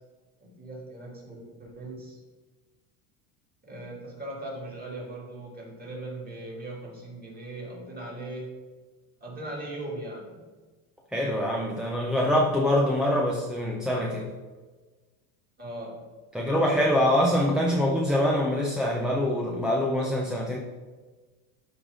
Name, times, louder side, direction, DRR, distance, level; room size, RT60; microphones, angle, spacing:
voice 1, 0.4-2.2 3.6-8.6 9.2-10.5 15.6-16.0 16.3-17.5, right 1 dB, 20° right, -4 dB, 2.7 m, -39 dB
voice 2, 11.1-14.3 16.3-20.6, left 1 dB, ahead, -2 dB, 0.4 m, -24 dB
12.0 x 4.8 x 3.7 m, 1.3 s
supercardioid pair, 145°, 45 cm